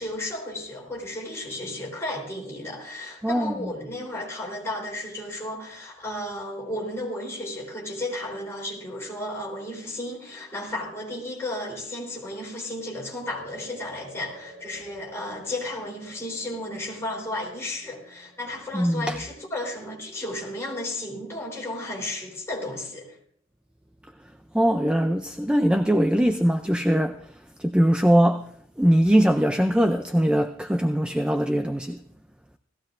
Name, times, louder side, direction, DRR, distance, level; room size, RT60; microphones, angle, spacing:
voice 1, 0.0-23.2, left 1 dB, 15° left, 3.6 m, -33 dB
voice 2, 3.2-3.7 18.7-19.2 24.5-27.3 27.6-28.4 28.8-32.0, equal, 5° right, 0.4 m, -21 dB
sound 1, 13.2-21.7, right 1 dB, 30° right, 6.6 m, -50 dB
17.5 x 15.0 x 2.5 m
head